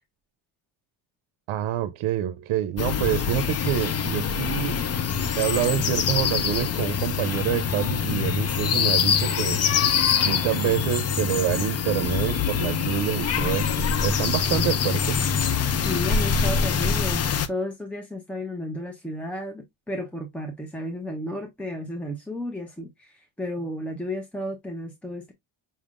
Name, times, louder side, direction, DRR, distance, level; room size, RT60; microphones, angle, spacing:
voice 1, 1.5-4.8 5.4-9.6 10.2-15.2, right 12 dB, 85° right, 0.6 m, -27 dB
sound 1, 2.8-17.5, left 6 dB, 35° left, 0.5 m, -24 dB
voice 2, 15.8-25.3, left 1 dB, 5° left, 0.7 m, -33 dB
5.5 x 3.5 x 2.4 m
cardioid pair, 115°, 47 cm